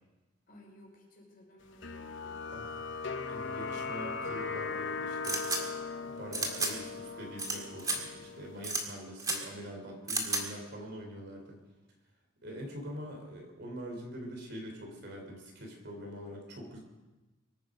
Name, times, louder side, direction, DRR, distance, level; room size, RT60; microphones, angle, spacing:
voice 1, 0.5-2.5, left 1 dB, 50° left, -2 dB, 5.6 m, -57 dB
sound 1, 1.8-8.7, left 4 dB, 65° left, 0.9 m, -39 dB
voice 2, 2.5-2.8 3.3-5.5 6.0-11.6 12.4-16.8, equal, 55° right, 1 dB, 3.7 m, -44 dB
sound 2, 5.2-5.6 6.3-6.7 7.4-7.5 7.8-8.0 8.6-8.8 9.2-9.4 10.1-10.4, right 2 dB, 20° right, 2.0 m, -31 dB
24.0 x 9.5 x 5.1 m, 1.1 s
head